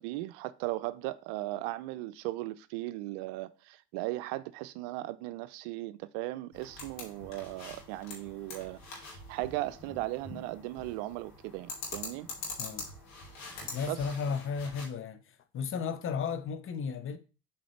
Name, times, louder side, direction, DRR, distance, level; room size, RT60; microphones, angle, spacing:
voice 1, 0.0-12.3 13.9-14.0, right 17 dB, 65° right, 0.5 m, -37 dB
sound 1, 6.5-14.9, left 3 dB, 60° left, 2.7 m, -44 dB
voice 2, 13.7-15.2 15.5-17.2, left 6 dB, 40° left, 0.9 m, -34 dB
7.7 x 4.3 x 3.2 m
hypercardioid pair, 65°, 32 cm